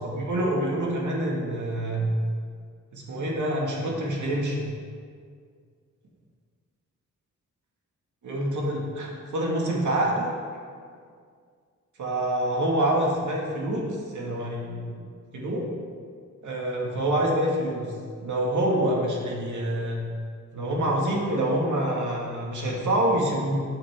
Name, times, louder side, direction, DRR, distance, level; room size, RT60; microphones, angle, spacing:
voice 1, 0.0-2.1 2.9-4.7 8.2-10.3 12.0-15.0 15.3-15.7 16.4-17.9 18.2-20.0 20.5-23.6, right 1 dB, 75° right, -2 dB, 2.0 m, -26 dB
12.5 x 8.8 x 3.7 m, 2.1 s
wide cardioid pair, 140°, 31 cm